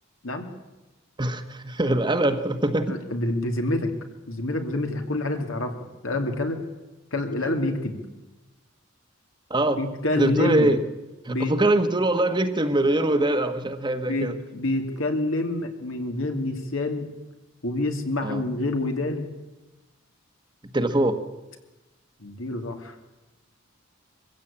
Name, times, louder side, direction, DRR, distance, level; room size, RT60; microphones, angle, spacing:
voice 1, 1.2-3.0 9.5-9.8 10.2-10.8 11.2-14.3 18.2-18.4 20.7-21.2, right 1 dB, 20° right, 8 dB, 1.2 m, -23 dB
voice 2, 2.9-3.9 4.3-5.7 6.0-6.6 7.1-8.0 9.8-10.7 11.3-11.5 14.0-17.1 17.6-19.3 22.2-22.9, left 2 dB, 70° left, 4 dB, 2.7 m, -27 dB
23.5 x 15.5 x 8.7 m, 1.1 s
head